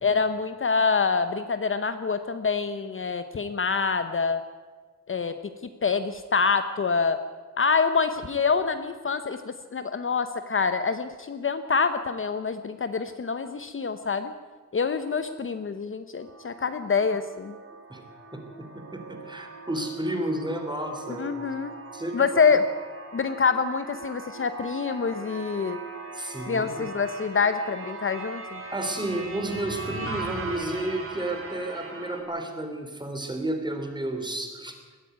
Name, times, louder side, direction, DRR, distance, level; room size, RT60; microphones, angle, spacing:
voice 1, 0.0-4.4 5.1-5.3 5.8-7.2 7.6-14.3 14.7-17.5 21.2-21.7 22.1-22.6 23.1-25.8 26.5-28.6, left 5 dB, 40° left, 10 dB, 0.9 m, -26 dB
sound 1, 16.2-32.2, right 3 dB, 45° right, 3.8 m, -40 dB
voice 2, 18.7-21.4 21.9-22.2 26.1-26.9 28.7-34.7, right 1 dB, 15° right, 4 dB, 3.3 m, -32 dB
20.5 x 13.5 x 9.5 m, 1.4 s
wide cardioid pair, 140°, 31 cm